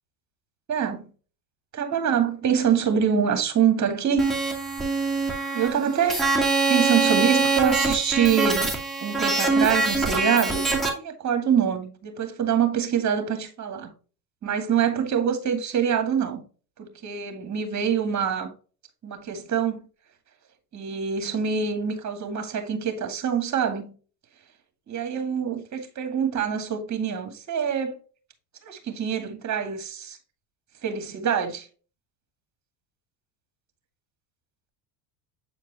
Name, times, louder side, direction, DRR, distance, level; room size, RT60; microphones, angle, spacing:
voice 1, 0.7-1.1 1.7-4.3 5.5-6.3 6.7-8.7 9.0-13.9 14.4-16.4 16.8-18.5 19.0-19.8 20.7-23.9 24.9-28.0 28.6-30.2 30.8-31.7, right 7 dB, 35° right, 2.2 m, -25 dB
sound 1, 4.2-10.9, right 3 dB, ahead, 2.2 m, -24 dB
8.3 x 4.5 x 3.0 m
supercardioid pair, 90°, 47 cm